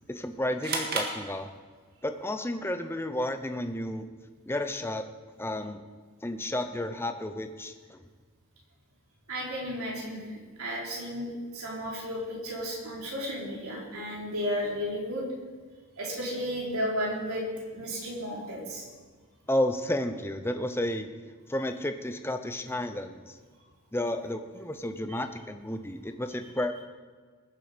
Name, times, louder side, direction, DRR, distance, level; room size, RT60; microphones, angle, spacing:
voice 1, 0.1-1.5 2.0-4.1 4.5-5.1 5.4-5.8 6.2-8.0 19.5-21.1 21.5-23.4 23.9-26.8, left 1 dB, 10° left, 8 dB, 0.7 m, -32 dB
sound 1, 0.6-2.0, right 3 dB, 45° right, 1.8 m, -33 dB
voice 2, 9.3-15.3 16.0-17.5 17.7-18.9, equal, 70° right, -3 dB, 3.8 m, -33 dB
20.5 x 7.5 x 5.1 m, 1.5 s
head